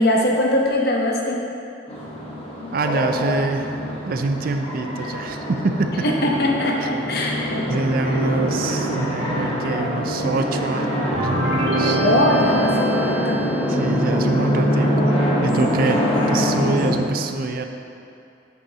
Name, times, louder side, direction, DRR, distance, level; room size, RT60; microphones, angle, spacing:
voice 1, 0.0-1.4 6.0-7.7 12.0-13.5, left 1 dB, 55° left, -1 dB, 0.9 m, -21 dB
sound 1, 1.9-17.0, equal, 30° left, 1.0 m, -24 dB
voice 2, 2.7-3.8 4.1-6.1 6.8-6.9 7.7-12.0 13.7-17.6, right 3 dB, 50° right, 6 dB, 0.4 m, -25 dB
sound 2, 11.1-13.9, right 1 dB, 85° right, 1.7 m, -24 dB
7.8 x 7.0 x 2.8 m, 2.6 s
head